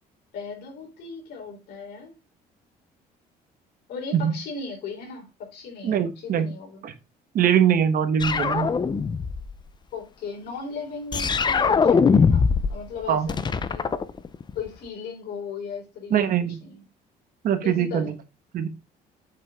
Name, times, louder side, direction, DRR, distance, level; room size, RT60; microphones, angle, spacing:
voice 1, 0.3-2.1 3.9-5.3 5.5-6.8 9.9-13.9 14.5-16.3 16.6-16.8 17.6-18.1, left 5 dB, 75° left, 2 dB, 3.9 m, -37 dB
voice 2, 5.8-6.5 6.8-6.9 7.3-8.7 13.1-13.3 16.1-16.6 17.4-18.1 18.5-18.7, right 8 dB, 60° right, 9 dB, 1.3 m, -22 dB
sound 1, 8.2-9.5 11.1-12.8 13.0-14.7, left 5 dB, 25° left, 0.6 m, -21 dB
7.5 x 5.5 x 3.6 m, 0.27 s
cardioid pair, 110°, 17 cm